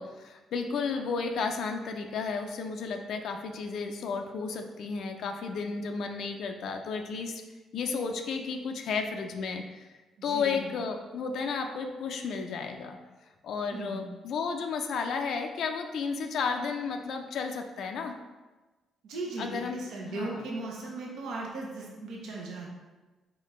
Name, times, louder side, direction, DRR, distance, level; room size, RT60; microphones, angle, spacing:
voice 1, 0.0-7.4 7.7-9.9 10.2-13.0 13.4-18.2 19.4-19.8 20.1-20.4, left 5 dB, 70° left, 4 dB, 0.4 m, -33 dB
voice 2, 10.2-10.7 13.7-14.1 19.0-22.7, right 2 dB, 80° right, -2 dB, 0.9 m, -37 dB
4.1 x 3.8 x 3.1 m, 1.2 s
cardioid pair, 90°, 0 cm